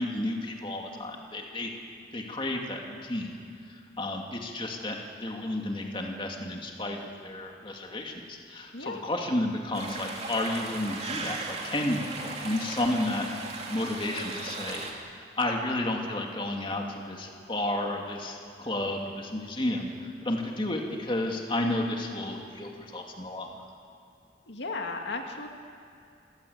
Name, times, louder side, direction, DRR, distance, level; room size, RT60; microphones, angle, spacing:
voice 1, 0.0-1.7 2.1-3.4 3.7-23.7, left 1 dB, 30° left, 1 dB, 2.5 m, -32 dB
sound 1, 9.7-14.9, right 3 dB, 35° right, 2.9 m, -37 dB
voice 2, 24.5-25.5, left 3 dB, 80° left, 3 dB, 2.2 m, -35 dB
27.0 x 16.0 x 8.6 m, 2.6 s
head